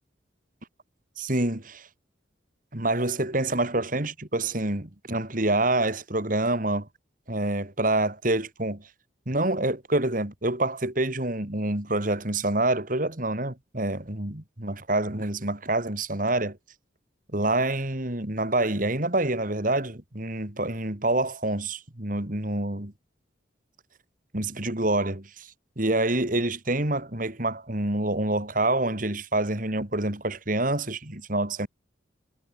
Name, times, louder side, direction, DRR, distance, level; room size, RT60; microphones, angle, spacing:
voice 1, 1.2-1.9 2.7-6.9 7.3-8.8 9.3-16.6 17.3-22.9 24.3-25.5 25.8-31.7, right 2 dB, 45° right, 2.8 m, -27 dB
head